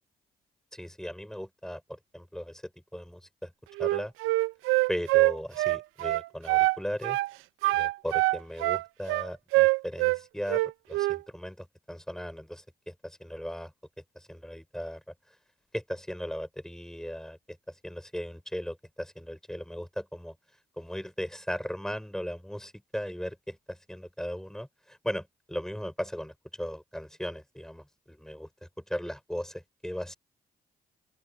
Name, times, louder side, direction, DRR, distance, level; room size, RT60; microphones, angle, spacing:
voice 1, 0.7-3.5 3.8-4.1 4.9-7.2 7.7-13.7 14.2-15.1 15.7-20.4 20.8-28.5 28.9-30.1, equal, ahead, 6.9 m, -37 dB
Wind instrument woodwind instrument, 3.8-6.8 7.0-7.3 7.6-10.2 10.5-11.2, right 20 dB, 75° right, 1.0 m, -24 dB
open air
hypercardioid pair, 45°, 21 cm